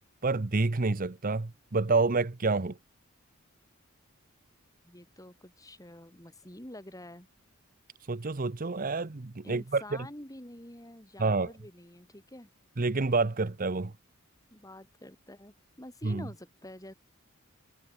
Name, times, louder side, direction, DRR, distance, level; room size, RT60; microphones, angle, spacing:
voice 1, 0.2-2.8 8.1-9.8 11.2-11.5 12.8-13.9 16.0-16.2, right 3 dB, 40° right, 0.8 m, -28 dB
voice 2, 4.8-7.3 9.4-12.5 14.5-16.9, left 1 dB, 15° left, 3.9 m, -47 dB
head